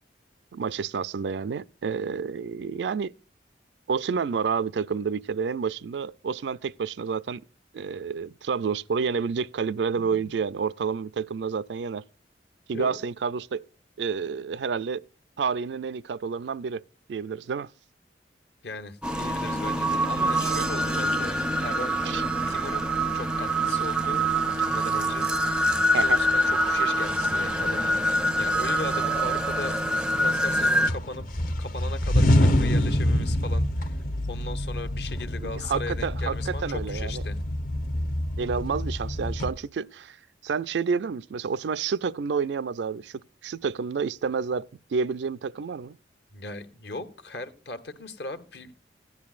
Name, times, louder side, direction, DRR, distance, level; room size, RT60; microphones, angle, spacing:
voice 1, 0.5-3.1 3.9-7.4 7.7-12.0 12.7-13.7 14.0-15.0 15.4-16.8 17.1-17.7 22.0-22.2 25.9-26.2 35.4-37.2 38.4-40.2 40.4-46.0, right 5 dB, 75° right, 0.4 m, -29 dB
voice 2, 18.6-21.9 22.5-25.7 25.9-28.0 28.4-31.2 31.6-34.0 34.3-37.4 46.3-48.7, left 3 dB, 65° left, 1.1 m, -38 dB
sound 1, 19.0-30.9, right 1 dB, 5° right, 0.4 m, -25 dB
sound 2, 27.6-27.7 28.3-29.0 29.4-30.5 30.8-39.5, left 1 dB, 50° left, 0.8 m, -26 dB
16.0 x 10.5 x 2.4 m
head